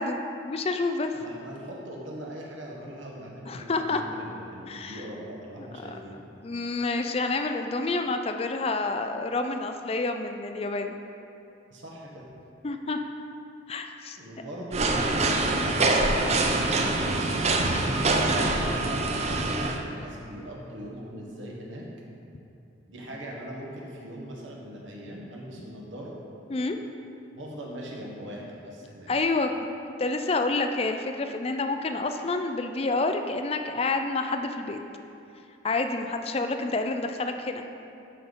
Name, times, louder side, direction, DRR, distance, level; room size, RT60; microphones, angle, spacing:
voice 1, 0.0-1.1 3.5-4.0 4.7-5.0 5.8-6.0 6.4-11.0 12.6-13.0 13.7-14.2 26.5-26.8 29.1-29.5 30.0-34.8 35.6-37.6, left 3 dB, 30° left, 6 dB, 0.4 m, -28 dB
voice 2, 1.1-6.2 11.7-12.2 14.2-16.0 16.6-21.8 22.9-26.1 27.3-29.1, equal, 75° right, -3 dB, 1.5 m, -40 dB
sound 1, 14.7-19.8, right 2 dB, 35° right, 0.5 m, -24 dB
12.5 x 5.3 x 4.1 m, 2.8 s
head